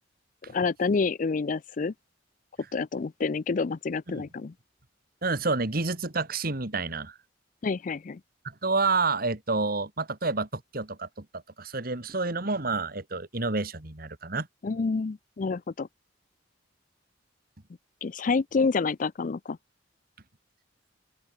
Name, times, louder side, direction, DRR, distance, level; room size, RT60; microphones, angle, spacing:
voice 1, 0.5-1.9 2.7-4.5 7.6-8.2 14.6-15.9 18.0-19.6, left 4 dB, 45° left, 0.4 m, -28 dB
voice 2, 5.2-7.2 8.4-14.5, right 3 dB, 50° right, 2.2 m, -29 dB
open air
head